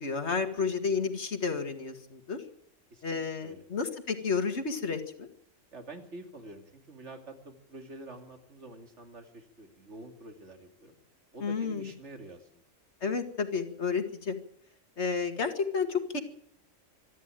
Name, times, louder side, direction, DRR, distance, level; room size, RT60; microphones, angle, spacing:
voice 1, 0.0-2.4 3.0-5.3 11.4-11.9 13.0-14.4 15.0-16.2, left 5 dB, 60° left, 7 dB, 2.4 m, -31 dB
voice 2, 2.9-3.7 5.7-10.9 11.3-12.6, right 2 dB, 65° right, 5 dB, 3.0 m, -47 dB
26.0 x 11.0 x 9.1 m, 0.69 s
omnidirectional pair, 1.3 m